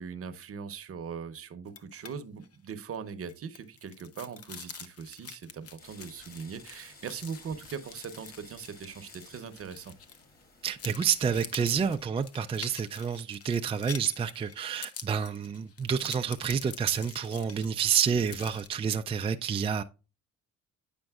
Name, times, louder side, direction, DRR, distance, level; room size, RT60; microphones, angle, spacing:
voice 1, 0.0-9.9, right 6 dB, 50° right, 0.8 m, -40 dB
sound 1, 1.7-2.1 2.4-2.6 2.9-10.4 10.8-18.7, left 6 dB, 50° left, 0.8 m, -46 dB
sound 2, 5.8-12.0, left 2 dB, 30° left, 1.7 m, -55 dB
voice 2, 10.6-19.8, right 7 dB, 20° right, 0.3 m, -29 dB
8.9 x 5.2 x 2.3 m
cardioid pair, 90°, 30 cm